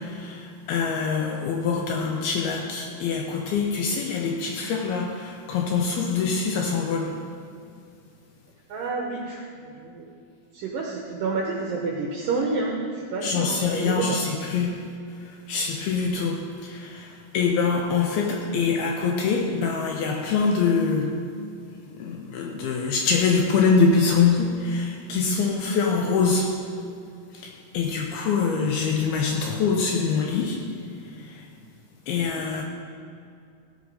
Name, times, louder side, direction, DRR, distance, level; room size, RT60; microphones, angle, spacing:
voice 1, 0.0-7.2 13.2-21.2 21.9-26.6 27.3-30.7 31.2-31.5 32.1-32.6, left 5 dB, 85° left, 2.3 m, -24 dB
voice 2, 8.7-10.1 10.5-14.2, right 3 dB, 80° right, 2.0 m, -29 dB
16.0 x 6.4 x 5.4 m
omnidirectional pair, 5.0 m